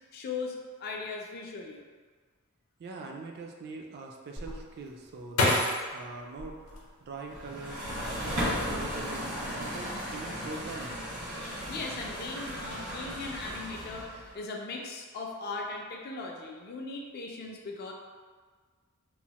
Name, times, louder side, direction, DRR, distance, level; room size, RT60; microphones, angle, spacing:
voice 1, 0.1-1.8 11.7-17.9, left 3 dB, 45° left, 0 dB, 0.4 m, -38 dB
voice 2, 2.8-11.0, right 3 dB, 45° right, 2 dB, 0.3 m, -43 dB
sound 1, 4.4-7.4 8.0-8.7 9.0-9.5, left 1 dB, 85° left, 0.6 m, -31 dB
sound 2, 7.3-14.3, equal, 75° right, 1.1 m, -36 dB
3.0 x 2.0 x 2.8 m, 1.5 s
head